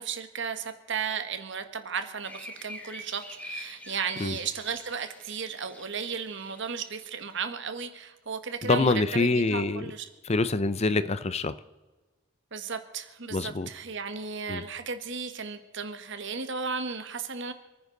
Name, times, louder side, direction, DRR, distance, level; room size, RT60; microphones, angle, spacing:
voice 1, 0.0-10.0 12.5-17.5, right 5 dB, 60° right, 9 dB, 1.4 m, -35 dB
sound 1, 2.2-7.4, left 1 dB, 5° left, 1.6 m, -45 dB
voice 2, 8.6-9.9 10.2-11.6 13.3-13.7 14.5-14.6, left 3 dB, 30° left, 15 dB, 0.5 m, -25 dB
28.0 x 9.8 x 3.9 m, 1.2 s
head